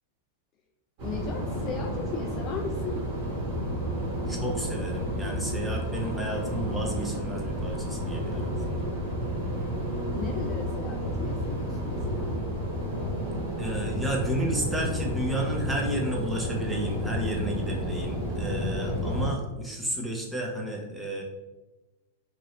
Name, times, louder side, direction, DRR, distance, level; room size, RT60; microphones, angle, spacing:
voice 1, 1.0-3.1 9.7-12.4, left 4 dB, 30° left, 2 dB, 0.3 m, -37 dB
sound 1, 1.0-19.3, equal, 45° right, 1.3 m, -31 dB
voice 2, 4.3-8.9 13.6-21.2, right 1 dB, 5° right, -1 dB, 0.6 m, -32 dB
3.0 x 2.6 x 3.0 m, 1.1 s
supercardioid pair, 145°, 0 cm